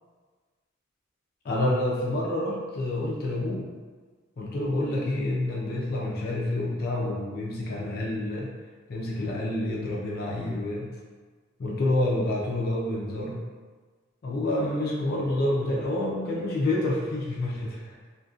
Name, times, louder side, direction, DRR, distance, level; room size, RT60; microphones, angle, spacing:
voice 1, 1.4-3.7 4.4-8.5 8.9-11.0 11.6-13.4 14.2-18.0, left 1 dB, 50° left, -4 dB, 0.4 m, -28 dB
2.5 x 2.2 x 2.4 m, 1.4 s
head